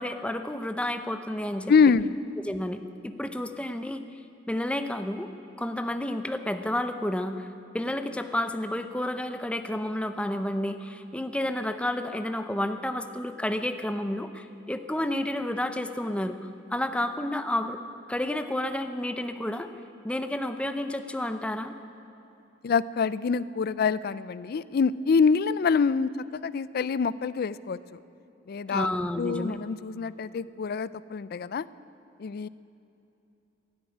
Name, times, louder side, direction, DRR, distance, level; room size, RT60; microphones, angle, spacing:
voice 1, 0.0-1.7 2.4-4.0 4.5-5.3 5.6-7.5 7.7-16.4 16.7-17.8 18.1-19.7 20.0-21.7 28.7-29.6, left 1 dB, 5° left, 8 dB, 0.6 m, -30 dB
voice 2, 1.7-2.2 22.6-28.0 28.5-28.9 29.2-31.7 32.2-32.5, left 5 dB, 55° left, 18 dB, 0.4 m, -25 dB
13.0 x 10.5 x 9.9 m, 2.8 s
head